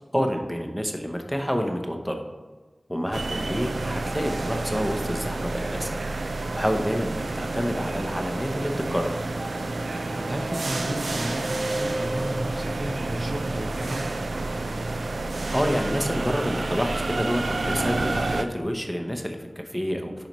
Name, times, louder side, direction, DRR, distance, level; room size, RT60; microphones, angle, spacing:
voice 1, 0.1-2.2 2.9-6.0 6.5-9.2 15.5-20.3, equal, ahead, 4 dB, 0.8 m, -28 dB
sound 1, 3.1-18.4, right 2 dB, 90° right, 0.4 m, -29 dB
Wind instrument woodwind instrument, 9.1-13.4, left 1 dB, 25° left, 1.3 m, -43 dB
voice 2, 10.1-14.1, right 1 dB, 35° right, 3 dB, 0.6 m, -33 dB
9.7 x 5.3 x 3.1 m, 1.3 s
wide cardioid pair, 70°, 0 cm